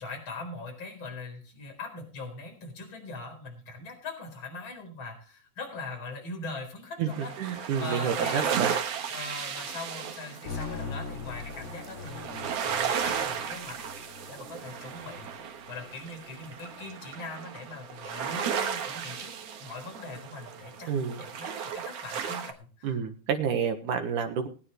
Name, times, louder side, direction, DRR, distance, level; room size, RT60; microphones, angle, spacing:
voice 1, 0.0-8.7 9.1-15.3 15.7-19.3 19.6-23.0, left 3 dB, 30° left, 3 dB, 4.7 m, -41 dB
sound 1, 7.1-22.5, right 7 dB, 90° right, 1.3 m, -35 dB
voice 2, 7.4-8.7 20.9-21.2 22.8-24.5, right 7 dB, 60° right, 7 dB, 2.4 m, -29 dB
sound 2, 10.5-18.5, left 4 dB, 75° left, 7.0 m, -43 dB
21.5 x 9.4 x 3.2 m, 0.38 s
omnidirectional pair, 4.9 m